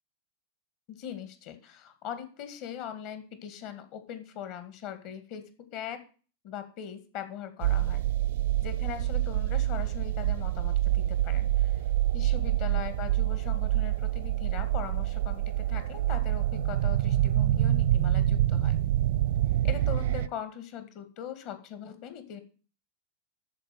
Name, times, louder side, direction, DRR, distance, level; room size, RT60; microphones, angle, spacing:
voice 1, 0.9-6.0 6.4-8.0 8.6-11.8 12.1-18.8 19.6-22.4, left 9 dB, 45° left, 10 dB, 2.1 m, -40 dB
sound 1, 7.6-20.3, right 13 dB, 55° right, 0.4 m, -26 dB
13.0 x 5.0 x 7.6 m, 0.37 s
figure-of-eight pair, 90°, 0 cm